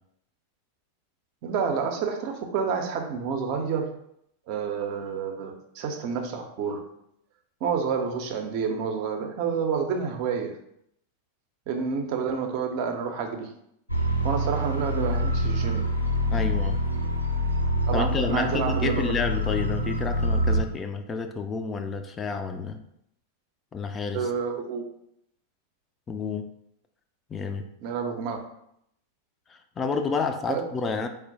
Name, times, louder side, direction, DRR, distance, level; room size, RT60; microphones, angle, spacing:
voice 1, 1.4-4.0 4.5-6.9 7.6-10.6 11.7-13.5 14.2-15.9 17.9-19.1 24.1-24.8 27.8-28.4 30.5-30.6, right 6 dB, 45° right, 4 dB, 0.6 m, -29 dB
sound 1, 13.9-20.6, equal, 90° right, 0.5 m, -26 dB
voice 2, 16.3-16.8 17.9-22.8 23.7-24.3 26.1-26.5 27.3-27.7 29.5-31.1, left 4 dB, 20° left, 6 dB, 0.4 m, -30 dB
4.4 x 2.0 x 3.9 m, 0.75 s
figure-of-eight pair, 90°, 0 cm